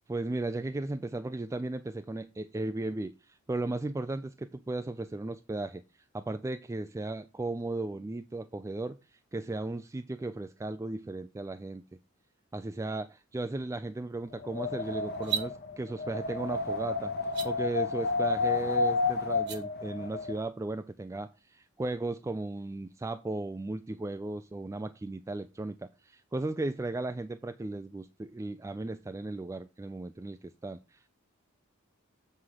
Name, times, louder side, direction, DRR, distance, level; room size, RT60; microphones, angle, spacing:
voice 1, 0.1-5.8 6.1-11.8 12.5-17.1 17.4-31.1, right 2 dB, 15° right, 0.3 m, -36 dB
Wind, 14.3-20.4, left 4 dB, 50° left, 1.0 m, -31 dB
sound 1, 15.1-15.5 17.2-17.5 19.3-19.6, right 9 dB, 55° right, 1.4 m, -33 dB
7.6 x 3.7 x 6.3 m
head